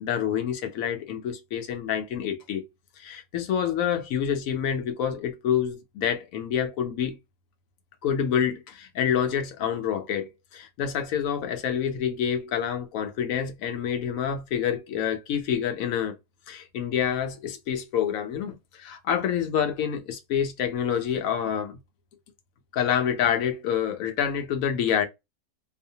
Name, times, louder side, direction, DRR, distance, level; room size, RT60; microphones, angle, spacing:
voice 1, 0.0-2.6 3.0-7.2 8.0-16.2 16.5-21.8 22.7-25.1, left 8 dB, 70° left, 1.0 m, -27 dB
2.7 x 2.0 x 2.7 m
omnidirectional pair, 1.6 m